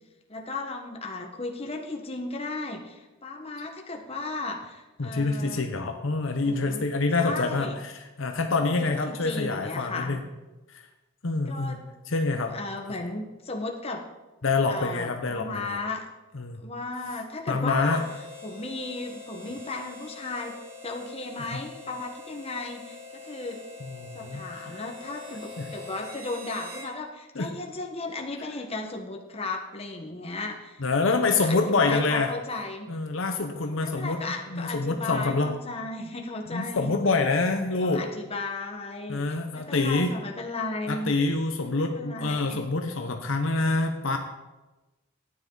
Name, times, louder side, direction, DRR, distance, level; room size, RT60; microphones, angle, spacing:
voice 1, 0.3-5.6 6.4-6.8 7.2-7.8 8.5-10.2 11.5-11.8 12.3-14.0 14.7-16.0 16.6-18.0 18.4-20.6 20.8-23.6 24.1-30.8 31.4-32.9 33.8-36.9 37.8-39.2 39.5-41.1 41.8-42.7, left 3 dB, 30° left, 2 dB, 1.3 m, -35 dB
voice 2, 5.0-10.2 10.7-10.8 11.2-12.5 12.9-13.0 14.4-15.8 16.3-16.6 17.5-18.0 21.4-21.6 23.8-24.7 25.6-25.7 27.3-27.5 30.8-32.3 32.9-34.2 34.5-35.5 36.5-38.1 39.1-40.1 40.9-44.2, left 3 dB, 65° left, 5 dB, 0.9 m, -26 dB
Harmonica, 17.8-26.9, left 3 dB, 45° right, 3.5 m, -44 dB
12.5 x 9.6 x 4.0 m, 1.1 s
head